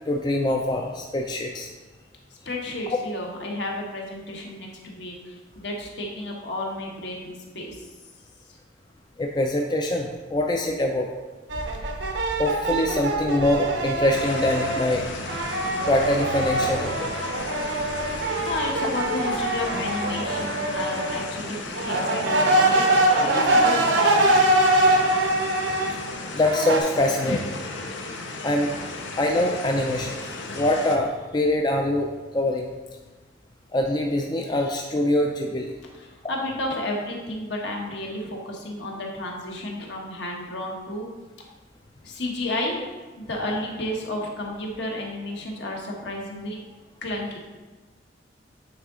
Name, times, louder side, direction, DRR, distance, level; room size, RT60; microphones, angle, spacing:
voice 1, 0.1-1.7 2.9-3.0 9.2-11.1 12.4-15.2 15.8-17.1 26.3-27.6 28.4-28.7 29.2-32.7 33.7-35.8, left 1 dB, 25° left, 2 dB, 0.3 m, -24 dB
voice 2, 2.5-5.1 5.6-7.3 7.5-7.7 18.4-22.8 23.2-24.3 35.9-41.1 42.0-42.8 43.2-46.6 47.0-47.4, left 1 dB, 65° left, -1 dB, 1.2 m, -32 dB
sound 1, 11.5-14.9 15.3-21.2 21.8-25.9 26.4-26.8, right 2 dB, 80° right, 0.8 m, -23 dB
sound 2, 14.1-31.0, left 3 dB, 80° left, 0.7 m, -34 dB
8.5 x 3.9 x 3.7 m, 1.3 s
head